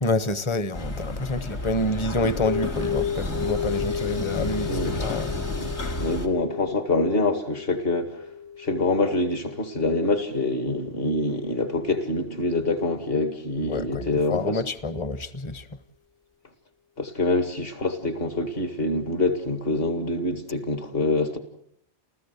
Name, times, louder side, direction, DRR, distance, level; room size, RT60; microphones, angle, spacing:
voice 1, 0.0-5.3 13.7-15.8, left 2 dB, 30° left, 1.0 m, -28 dB
sound 1, 0.7-6.3, left 2 dB, 80° left, 2.4 m, -31 dB
sound 2, 2.4-11.4, left 8 dB, 5° left, 0.6 m, -34 dB
voice 2, 4.7-5.0 5.6-5.7 6.0-8.1 8.6-14.6 17.0-21.4, left 2 dB, 60° left, 2.3 m, -25 dB
29.0 x 15.0 x 8.2 m
omnidirectional pair, 1.1 m